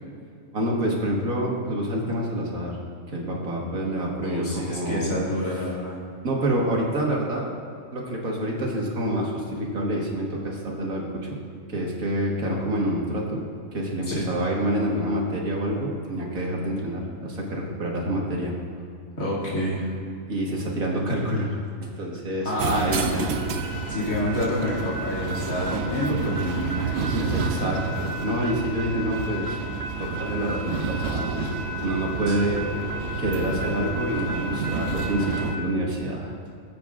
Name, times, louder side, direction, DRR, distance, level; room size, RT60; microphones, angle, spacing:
voice 1, 0.5-2.8 3.1-5.1 6.2-7.5 7.9-11.4 11.7-13.4 13.7-18.5 20.3-23.2 27.1-29.6 30.0-32.7 33.2-36.3, right 1 dB, 75° right, -2 dB, 2.1 m, -27 dB
voice 2, 4.2-6.0 14.1-14.3 19.2-19.9 22.4-23.3 23.9-27.5 32.3-32.4, left 1 dB, 70° left, -7 dB, 2.9 m, -28 dB
sound 1, 22.6-35.6, right 4 dB, 60° right, 0.8 m, -29 dB
18.5 x 8.4 x 2.5 m, 2.5 s
omnidirectional pair, 1.5 m